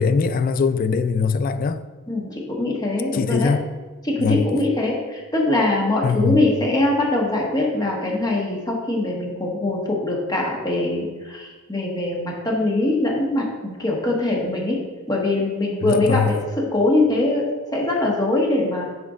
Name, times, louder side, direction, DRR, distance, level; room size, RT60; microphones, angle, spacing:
voice 1, 0.0-1.8 3.1-3.7 4.2-4.5 6.0-6.5 15.8-16.3, left 5 dB, 40° left, 0.3 m, -21 dB
voice 2, 2.1-3.5 4.0-14.8 15.1-18.9, left 2 dB, 15° left, 1.2 m, -22 dB
6.3 x 4.4 x 4.9 m
head